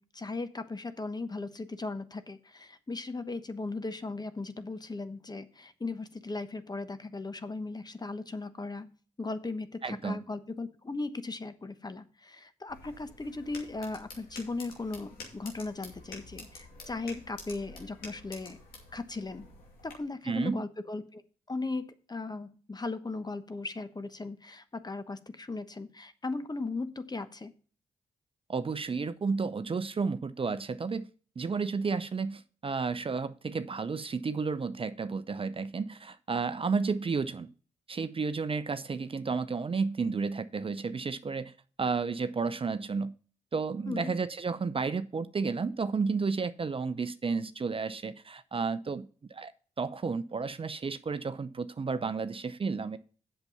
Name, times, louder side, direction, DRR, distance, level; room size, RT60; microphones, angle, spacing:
voice 1, 0.0-8.9 9.2-18.6 18.9-19.5 19.8-21.2 21.5-27.5 43.9-44.2, left 3 dB, 25° left, 11 dB, 1.1 m, -37 dB
voice 2, 9.8-10.2 20.3-20.6 28.5-31.1 31.4-37.5 37.9-41.5 41.8-43.1 43.5-49.5 49.8-53.0, right 4 dB, 35° right, 13 dB, 0.7 m, -32 dB
sound 1, 12.7-19.9, left 3 dB, 75° left, 2.5 m, -49 dB
8.0 x 6.7 x 5.7 m, 0.39 s
hypercardioid pair, 40°, 15 cm